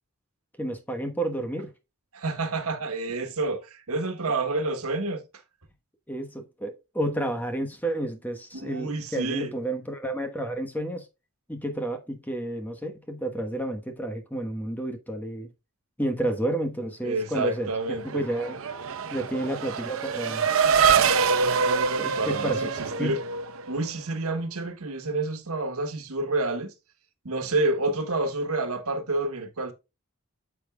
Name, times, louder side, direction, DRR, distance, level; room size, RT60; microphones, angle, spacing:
voice 1, 0.6-1.7 6.1-11.1 11.5-15.5 16.0-17.7 18.0-18.6 19.1-20.5 22.0-22.6 23.0-23.2, right 1 dB, 10° left, 1.1 m, -30 dB
voice 2, 2.1-5.2 8.5-9.5 17.0-18.3 22.2-23.2 23.7-26.7 27.2-29.7, right 2 dB, 85° right, 1.4 m, -29 dB
Race car auto racing / Accelerating revving vroom, 17.8-23.9, right 6 dB, 70° right, 0.8 m, -25 dB
8.8 x 7.0 x 2.2 m
head